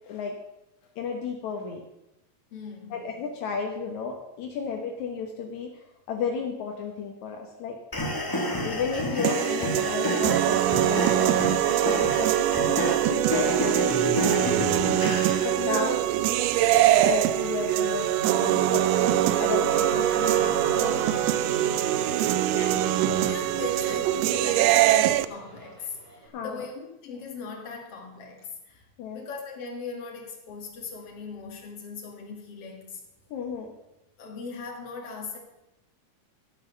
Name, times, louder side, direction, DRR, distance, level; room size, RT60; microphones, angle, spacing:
voice 1, 1.0-1.8 2.9-7.8 8.6-13.9 15.4-16.0 17.1-18.8 19.4-21.2 22.5-22.9 26.3-26.7 29.0-29.2 33.3-33.7, left 5 dB, 75° left, 2 dB, 2.5 m, -33 dB
voice 2, 2.5-3.0 23.0-28.9 29.1-33.0 34.2-35.4, left 4 dB, 55° left, 2 dB, 3.0 m, -39 dB
sound 1, 7.9-15.5, left 1 dB, 20° left, 0.5 m, -30 dB
sound 2, 9.2-25.2, right 12 dB, 80° right, 1.5 m, -23 dB
Race car auto racing / Accelerating revving vroom, 13.4-26.3, right 3 dB, 25° right, 2.5 m, -38 dB
13.0 x 9.0 x 6.6 m, 0.90 s
omnidirectional pair, 3.4 m